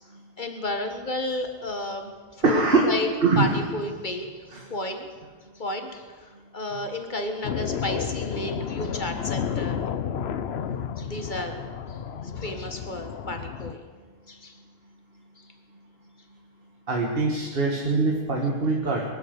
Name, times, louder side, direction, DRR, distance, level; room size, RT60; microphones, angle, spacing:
voice 1, 0.4-3.1 3.3-4.3 4.7-5.1 5.5-9.8 11.0-11.6 11.9-12.0 12.2-13.8 14.3-14.5 15.4-15.5, left 2 dB, 50° left, 5 dB, 1.7 m, -32 dB
voice 2, 2.4-2.9 3.2-3.5 4.5-4.6 16.9-19.1, right 3 dB, 65° right, 0 dB, 1.9 m, -23 dB
sound 1, 7.4-13.7, left 8 dB, 85° left, 1.0 m, -31 dB
22.5 x 7.9 x 8.1 m, 1.5 s
omnidirectional pair, 1.1 m